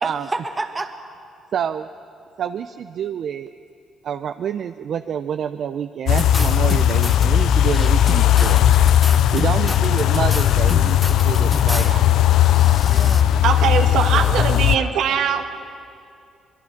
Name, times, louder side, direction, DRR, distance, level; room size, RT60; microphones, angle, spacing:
voice 1, 0.0-0.9 9.5-9.7 12.8-13.7 14.0-15.4, right 2 dB, 20° right, 5 dB, 2.0 m, -32 dB
voice 2, 1.5-1.9 2.4-3.5 4.0-8.6 9.3-12.0, right 8 dB, 65° right, 8 dB, 0.6 m, -27 dB
sound 1, 6.1-14.8, left 11 dB, 80° left, 0.4 m, -17 dB
sound 2, 6.2-7.3 7.6-12.0 12.3-13.2, left 2 dB, 25° left, 1.3 m, -31 dB
voice 3, 13.4-15.4, right 8 dB, 85° right, 4 dB, 1.6 m, -21 dB
24.5 x 21.5 x 5.9 m, 2.4 s
cardioid pair, 90°, 0 cm